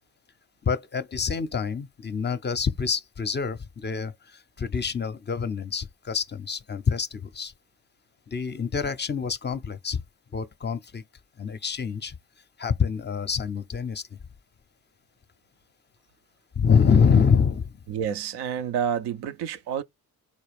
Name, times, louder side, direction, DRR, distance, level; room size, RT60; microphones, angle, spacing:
voice 1, 0.6-7.5 8.3-10.0 10.3-11.0 11.4-12.2 12.6-14.2 16.6-17.8, left 6 dB, 25° left, 0.5 m, -26 dB
voice 2, 17.9-19.8, right 8 dB, 75° right, 0.6 m, -29 dB
4.2 x 2.3 x 3.4 m
supercardioid pair, 60°, 39 cm